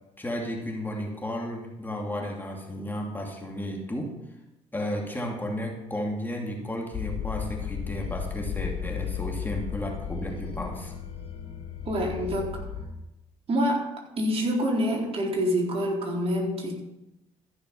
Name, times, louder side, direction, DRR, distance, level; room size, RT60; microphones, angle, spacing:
voice 1, 0.2-4.2 4.7-10.9, equal, 15° left, 0 dB, 2.7 m, -33 dB
sound 1, 6.9-12.8, left 7 dB, 45° left, 4.1 m, -34 dB
voice 2, 11.9-12.6 13.5-13.9 14.2-16.7, equal, 45° right, -1 dB, 3.9 m, -26 dB
14.5 x 6.7 x 5.7 m, 0.91 s
supercardioid pair, 65°, 14 cm